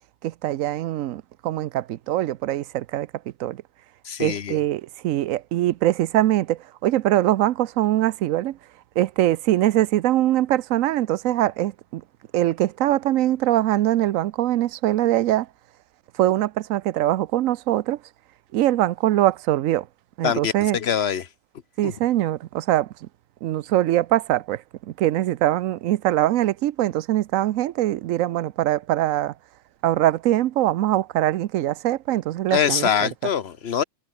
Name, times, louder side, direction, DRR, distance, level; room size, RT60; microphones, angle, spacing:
voice 1, 0.2-3.1 3.4-3.6 4.2-8.6 9.0-12.0 12.3-15.5 16.2-18.0 18.5-19.9 20.2-20.8 21.8-22.9 23.4-29.3 29.8-33.1, right 13 dB, 85° right, 1.0 m, -22 dB
voice 2, 4.0-4.6 20.2-21.3 21.8-21.9 32.5-33.8, left 8 dB, 55° left, 1.3 m, -24 dB
omnidirectional pair, 1.4 m